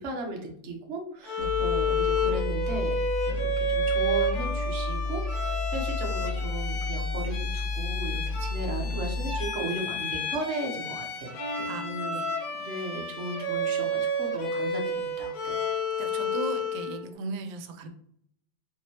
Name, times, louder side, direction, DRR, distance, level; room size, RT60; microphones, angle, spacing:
voice 1, 0.0-2.9 3.3-12.2 12.5-15.6, right 2 dB, 50° right, 1 dB, 0.9 m, -36 dB
Bowed string instrument, 1.2-17.0, left 1 dB, 90° left, 1.9 m, -31 dB
sound 1, 1.4-9.5, left 3 dB, 35° right, 1.3 m, -31 dB
voice 2, 16.0-17.9, right 4 dB, 85° right, 7 dB, 1.3 m, -37 dB
4.3 x 3.1 x 2.8 m, 0.70 s
omnidirectional pair, 2.1 m